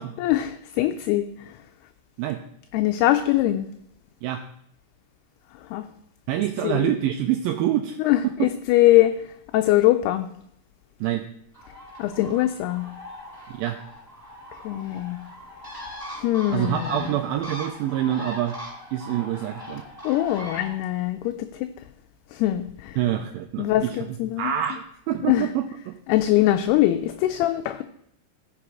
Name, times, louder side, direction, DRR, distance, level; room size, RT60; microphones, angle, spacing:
voice 1, 0.2-1.6 2.7-3.7 5.6-5.9 6.6-7.0 8.0-9.3 9.5-10.3 12.0-12.9 14.6-15.2 16.2-17.1 20.0-21.7 22.3-23.0 23.6-24.5 25.3-25.5 26.1-27.8, left 14 dB, 80° left, 8 dB, 2.5 m, -22 dB
voice 2, 6.3-8.0 8.2-8.3 11.0-11.2 13.5-13.8 16.5-18.6 18.9-19.8 23.0-26.0, right 12 dB, 85° right, 6 dB, 2.1 m, -26 dB
Bird, 11.5-20.8, left 1 dB, 5° left, 4.1 m, -40 dB
15.5 x 6.1 x 4.8 m, 0.72 s
omnidirectional pair, 4.8 m